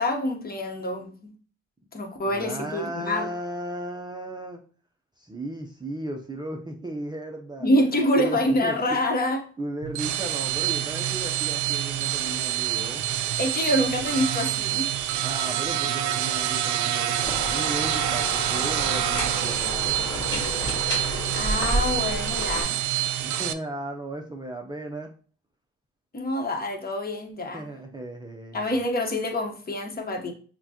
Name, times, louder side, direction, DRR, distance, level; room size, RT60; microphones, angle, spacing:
voice 1, 0.0-1.3 1.9-3.3 7.6-9.4 13.4-14.9 21.3-22.8 26.1-27.6 28.5-30.3, left 1 dB, 30° left, 1.0 m, -26 dB
voice 2, 2.2-4.6 5.2-9.0 9.6-13.0 15.2-20.0 23.2-25.1 27.5-28.8, right 1 dB, 15° right, 0.5 m, -35 dB
sound 1, 9.8-23.5, right 12 dB, 75° right, 0.4 m, -27 dB
sound 2, 17.2-22.6, equal, 15° left, 1.7 m, -31 dB
5.8 x 2.2 x 2.9 m
cardioid pair, 90°, 30 cm